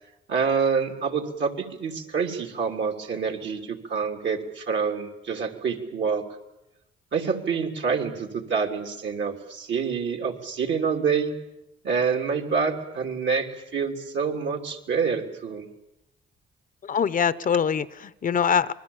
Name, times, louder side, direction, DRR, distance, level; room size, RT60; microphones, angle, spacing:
voice 1, 0.3-6.2 7.1-11.3 11.8-15.7, right 5 dB, 65° right, 3 dB, 3.1 m, -27 dB
voice 2, 16.8-18.7, left 7 dB, 45° left, 15 dB, 0.8 m, -23 dB
27.0 x 21.5 x 7.2 m, 0.93 s
cardioid pair, 90°, 20 cm